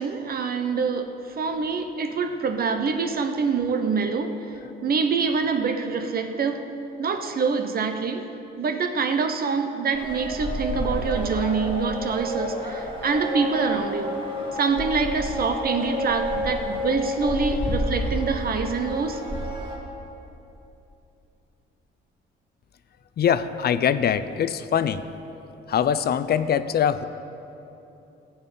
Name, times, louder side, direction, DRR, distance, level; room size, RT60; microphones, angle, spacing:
voice 1, 0.0-4.4 4.8-6.7 7.0-8.3 8.6-14.2 14.5-19.2, right 5 dB, 50° right, 7 dB, 0.9 m, -25 dB
sound 1, 9.9-19.8, equal, 25° right, 3.0 m, -29 dB
voice 2, 23.2-25.0 25.7-27.0, left 8 dB, 50° left, 13 dB, 0.6 m, -23 dB
14.5 x 5.7 x 8.4 m, 2.9 s
cardioid pair, 90°, 20 cm